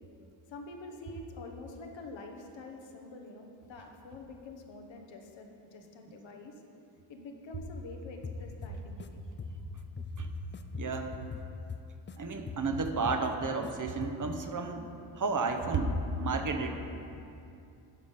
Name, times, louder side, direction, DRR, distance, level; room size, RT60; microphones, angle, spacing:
voice 1, 0.5-6.5 7.1-9.1 16.5-16.7, left 2 dB, 70° left, 3 dB, 1.2 m, -46 dB
sound 1, 8.2-9.1 9.4-12.2 12.5-13.7 14.0-14.4, left 6 dB, 25° left, 0.4 m, -43 dB
voice 2, 10.7-11.2 12.2-16.7, right 3 dB, 40° right, 6 dB, 0.9 m, -32 dB
11.5 x 4.9 x 5.4 m, 2.6 s
cardioid pair, 70°, 47 cm